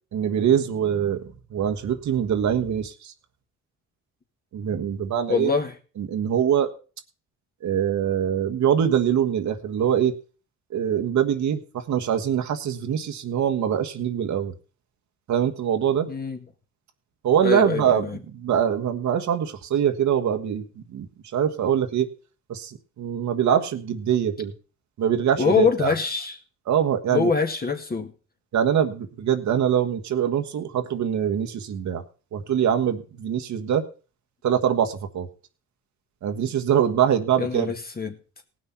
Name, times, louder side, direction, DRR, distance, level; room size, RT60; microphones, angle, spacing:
voice 1, 0.1-3.1 4.5-5.5 6.0-6.7 7.6-10.1 10.7-14.5 15.3-16.1 17.2-22.1 22.5-24.5 25.0-25.9 26.7-27.3 28.5-32.0 32.3-33.9 34.4-35.3 36.2-37.7, right 9 dB, 65° right, 6 dB, 1.5 m, -23 dB
voice 2, 5.3-5.7 16.1-16.4 17.4-18.2 25.4-26.4 27.1-28.1 37.4-38.1, left 5 dB, 30° left, 5 dB, 2.2 m, -24 dB
18.0 x 6.4 x 5.7 m, 0.37 s
cardioid pair, 90°, 30 cm